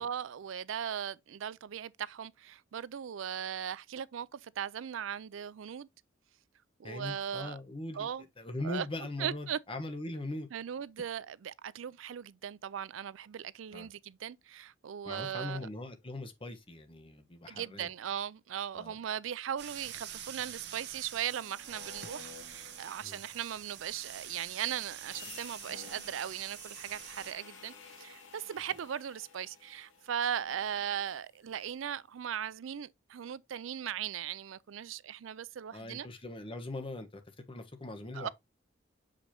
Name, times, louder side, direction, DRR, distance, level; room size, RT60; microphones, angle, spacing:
voice 1, 0.0-5.9 6.8-7.6 7.9-8.3 8.6-8.9 9.2-9.6 10.5-15.7 17.5-36.1 38.1-38.3, right 9 dB, 80° right, 0.4 m, -38 dB
voice 2, 6.8-8.1 8.4-10.5 13.7-13.9 15.0-17.9 18.7-18.9 23.0-23.2 35.7-37.2 37.5-38.3, left 2 dB, 30° left, 1.2 m, -40 dB
sound 1, 19.6-27.3, right 10 dB, 60° right, 1.0 m, -46 dB
sound 2, 21.4-31.5, left 6 dB, 80° left, 2.0 m, -54 dB
6.5 x 5.0 x 2.9 m
head